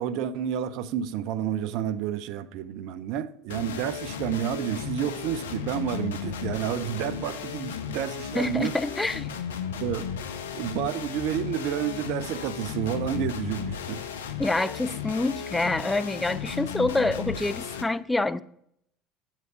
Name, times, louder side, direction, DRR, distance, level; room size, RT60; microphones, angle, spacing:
voice 1, 0.0-8.8 9.8-10.1 10.5-14.0, right 9 dB, 60° right, 0.6 m, -30 dB
sound 1, 3.5-17.8, left 7 dB, 80° left, 0.7 m, -35 dB
voice 2, 8.3-9.3 14.4-18.4, left 2 dB, 10° left, 0.5 m, -26 dB
7.9 x 7.3 x 4.6 m
hypercardioid pair, 65°, 0 cm